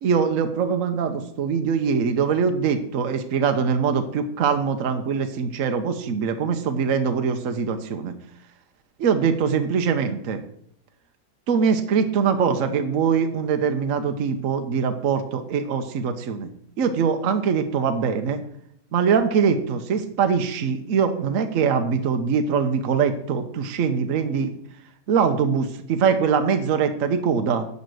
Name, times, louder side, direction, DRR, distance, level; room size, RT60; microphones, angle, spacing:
voice 1, 0.0-8.1 9.0-10.4 11.5-16.5 16.8-18.4 18.9-24.5 25.1-27.7, right 6 dB, 60° right, 7 dB, 1.1 m, -23 dB
10.5 x 4.2 x 7.7 m, 0.67 s
omnidirectional pair, 1.8 m